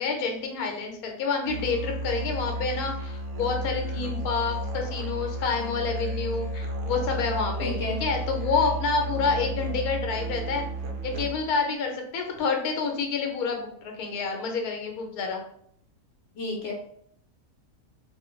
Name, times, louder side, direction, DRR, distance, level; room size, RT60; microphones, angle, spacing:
voice 1, 0.0-10.6 11.0-15.4, left 4 dB, 80° left, 2 dB, 1.2 m, -28 dB
Musical instrument, 1.4-11.6, right 1 dB, 70° right, 0.5 m, -33 dB
voice 2, 7.6-8.0 16.4-16.7, left 2 dB, 60° left, -2 dB, 0.9 m, -31 dB
3.0 x 2.2 x 3.1 m, 0.67 s
omnidirectional pair, 1.5 m